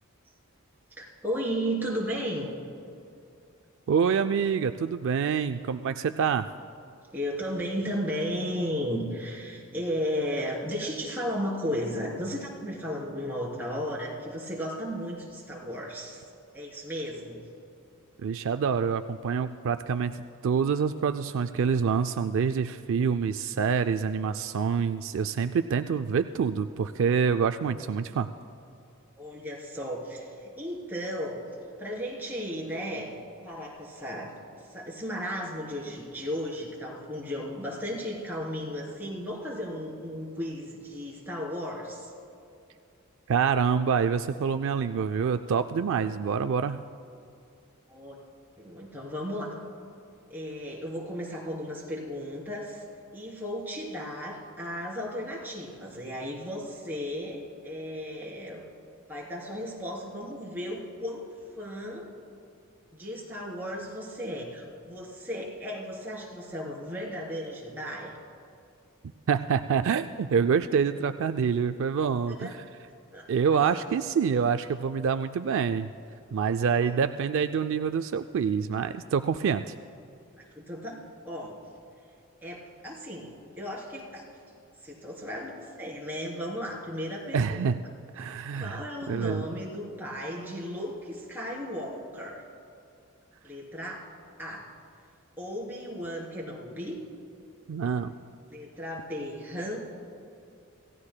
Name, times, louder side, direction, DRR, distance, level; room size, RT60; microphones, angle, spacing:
voice 1, 1.0-2.5 7.1-16.2 16.5-17.4 29.2-31.4 31.8-33.1 33.4-34.3 34.7-42.1 47.9-48.2 48.6-49.5 50.3-52.8 53.1-58.6 59.1-61.2 61.6-62.1 62.9-68.1 72.3-72.5 73.1-73.3 76.7-77.0 80.4-81.6 82.4-84.2 84.8-87.7 88.5-92.4 93.4-94.1 94.4-94.7 95.4-97.0 98.5-99.8, equal, 10° right, -4 dB, 3.1 m, -35 dB
voice 2, 3.9-6.5 18.2-20.2 20.4-28.3 43.3-46.8 69.3-72.5 73.3-75.9 76.3-79.7 87.3-87.8 88.1-89.4 97.7-98.1, right 6 dB, 60° right, 9 dB, 0.4 m, -26 dB
26.5 x 16.5 x 2.2 m, 2.5 s
head